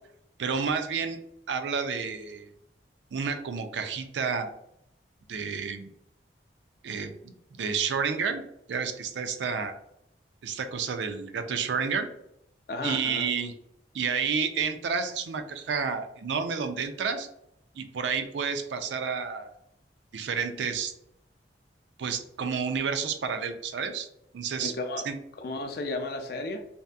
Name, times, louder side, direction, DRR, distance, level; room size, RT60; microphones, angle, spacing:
voice 1, 0.4-1.2 1.5-2.5 3.1-4.5 5.3-5.9 6.8-8.4 8.7-9.7 10.4-12.1 12.8-13.5 13.9-17.3 17.8-19.5 20.1-20.9 22.0-24.1 24.3-24.7 25.0-25.2, right 6 dB, 80° right, 7 dB, 0.4 m, -30 dB
voice 2, 12.7-13.3 24.6-25.1 25.4-26.7, left 2 dB, 55° left, 5 dB, 0.4 m, -33 dB
2.7 x 2.5 x 2.2 m, 0.77 s
head